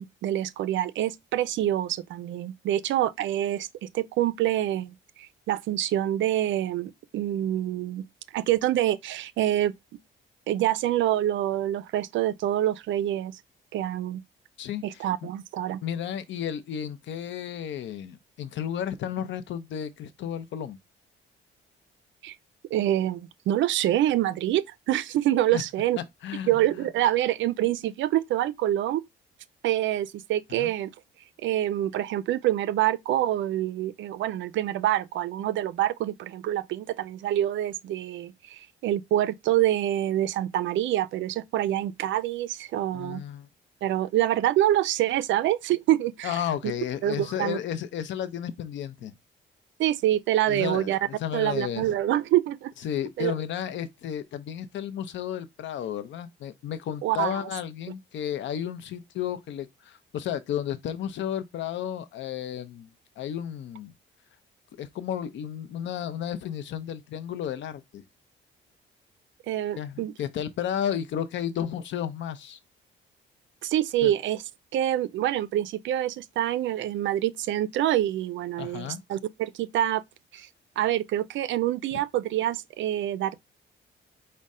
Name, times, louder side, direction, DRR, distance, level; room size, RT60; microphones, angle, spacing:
voice 1, 0.0-8.1 8.3-9.7 10.5-13.4 13.7-14.2 14.8-15.8 22.2-22.4 22.7-26.0 26.5-29.0 29.6-30.9 31.4-43.2 43.8-46.4 47.0-47.6 49.8-51.0 51.3-52.7 53.2-53.3 57.0-57.4 69.5-70.1 73.6-74.4 74.7-80.0 80.3-80.5 80.8-83.4, right 13 dB, 75° right, 0.4 m, -26 dB
voice 2, 14.6-15.3 15.8-20.8 25.5-25.6 26.2-26.9 30.5-30.7 42.9-43.5 46.2-49.1 50.5-51.9 52.8-62.9 63.2-63.9 64.8-68.0 69.7-72.6 74.0-74.1 78.6-79.0, left 9 dB, 70° left, 0.6 m, -33 dB
5.3 x 2.1 x 3.6 m
cardioid pair, 90°, 20 cm